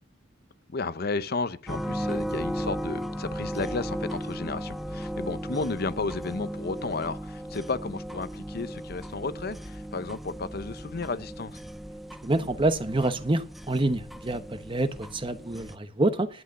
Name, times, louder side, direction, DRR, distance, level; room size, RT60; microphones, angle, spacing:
voice 1, 0.7-11.6, left 3 dB, 50° left, 0.7 m, -33 dB
sound 1, 1.7-15.8, equal, ahead, 0.5 m, -36 dB
voice 2, 12.2-16.3, right 2 dB, 25° right, 0.9 m, -27 dB
11.5 x 8.3 x 7.5 m
head